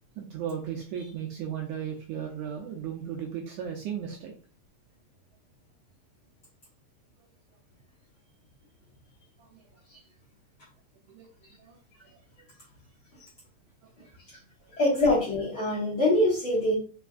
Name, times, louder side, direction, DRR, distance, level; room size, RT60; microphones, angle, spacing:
voice 1, 0.2-4.3 9.4-9.6 11.1-11.3 11.6-11.8, right 8 dB, 80° right, 0 dB, 1.8 m, -36 dB
voice 2, 14.7-16.7, left 1 dB, 60° left, -5 dB, 1.5 m, -24 dB
5.2 x 3.3 x 2.4 m, 0.40 s
omnidirectional pair, 3.9 m